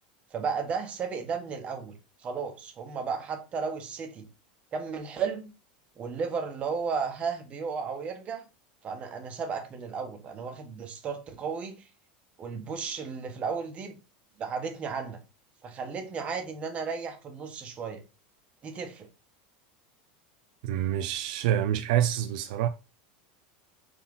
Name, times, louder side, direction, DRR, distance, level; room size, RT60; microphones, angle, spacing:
voice 1, 0.3-1.9 2.2-4.3 4.7-5.5 6.0-8.4 8.8-11.9 12.4-14.0 14.4-15.2 15.6-18.0 18.6-19.1, right 5 dB, 25° right, 1.5 m, -34 dB
voice 2, 20.6-22.7, right 11 dB, 70° right, 0.5 m, -27 dB
5.8 x 4.1 x 3.9 m
supercardioid pair, 140°, 5 cm